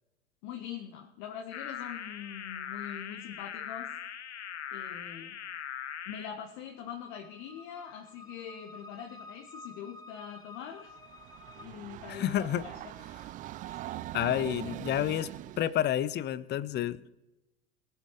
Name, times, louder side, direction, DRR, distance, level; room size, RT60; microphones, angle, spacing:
voice 1, 0.4-3.9 4.7-5.3 6.1-11.0 11.6-12.9 13.6-13.9 14.3-14.7, left 8 dB, 50° left, 2 dB, 1.7 m, -43 dB
sound 1, 1.5-6.3, left 9 dB, 75° left, 0.9 m, -40 dB
sound 2, 5.9-11.6, left 3 dB, 10° left, 1.2 m, -52 dB
Train, 10.9-15.8, right 14 dB, 25° right, 0.4 m, -42 dB
voice 2, 12.1-12.6 14.1-15.3 15.6-17.1, left 11 dB, 30° left, 18 dB, 0.8 m, -29 dB
21.0 x 7.8 x 5.1 m, 0.95 s
figure-of-eight pair, 80°, 34 cm